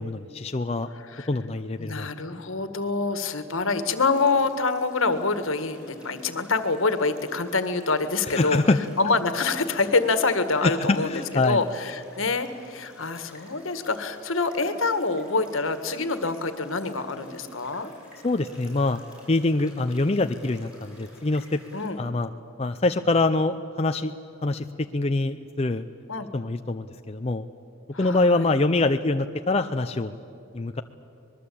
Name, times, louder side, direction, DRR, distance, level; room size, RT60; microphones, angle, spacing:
voice 1, 0.0-0.9 1.3-2.4 8.4-8.8 10.6-11.6 18.2-19.0 19.3-21.6 22.0-22.3 22.6-24.1 24.4-25.8 26.3-27.5 28.0-30.1 30.5-30.8, left 2 dB, 30° left, 7 dB, 0.5 m, -24 dB
voice 2, 1.8-8.6 9.0-17.9 21.7-22.0 26.1-26.3 27.9-28.5, left 3 dB, 70° left, 10 dB, 1.7 m, -26 dB
sound 1, 3.7-21.9, left 1 dB, 5° right, 6.3 m, -52 dB
25.5 x 21.0 x 8.5 m, 2.7 s
head